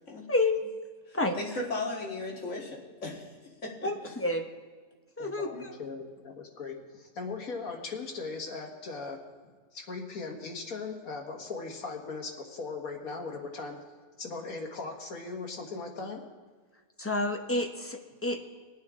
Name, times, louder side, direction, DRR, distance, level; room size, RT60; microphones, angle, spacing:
voice 1, 0.3-0.6 1.1-1.4 3.8-4.4 5.2-5.7 17.0-18.4, left 2 dB, 15° left, 3 dB, 0.6 m, -29 dB
voice 2, 1.1-3.3 3.6-4.1 5.5-5.6, left 2 dB, 55° left, -2 dB, 2.1 m, -36 dB
voice 3, 5.2-9.2 9.7-13.8 14.2-16.2, left 4 dB, 75° left, 1 dB, 2.0 m, -39 dB
21.0 x 8.8 x 3.6 m, 1.4 s
omnidirectional pair, 1.5 m